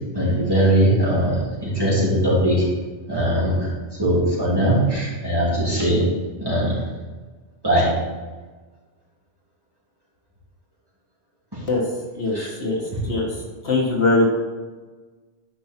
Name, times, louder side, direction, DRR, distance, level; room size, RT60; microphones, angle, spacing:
voice 1, 0.1-2.7 3.1-3.7 4.0-6.1 6.4-6.8 7.6-8.0 11.5-11.6 12.3-12.5, right 1 dB, 20° right, -8 dB, 3.1 m, -20 dB
voice 2, 12.2-13.3 13.6-14.3, left 2 dB, 70° left, -2 dB, 1.8 m, -21 dB
10.0 x 5.4 x 4.5 m, 1.3 s
omnidirectional pair, 1.1 m